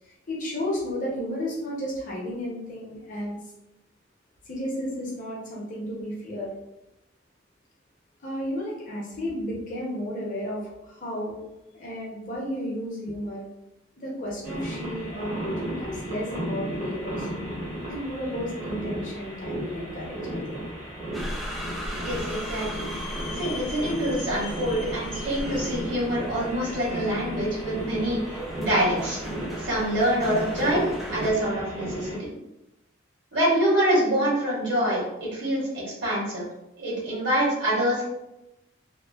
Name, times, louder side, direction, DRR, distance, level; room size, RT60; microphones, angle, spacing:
voice 1, 0.0-3.4 4.4-6.5 8.2-11.4 11.7-13.4 14.0-17.3 17.9-20.6, equal, 40° left, -4 dB, 0.7 m, -33 dB
sound 1, 14.4-32.2, right 1 dB, 40° right, 0.8 m, -34 dB
sound 2, 21.1-31.3, left 1 dB, ahead, 0.3 m, -37 dB
voice 2, 22.0-22.9 23.3-29.2 29.6-32.3 33.3-36.5 36.8-38.0, right 1 dB, 70° right, -6 dB, 1.3 m, -26 dB
2.8 x 2.1 x 2.3 m, 0.92 s
head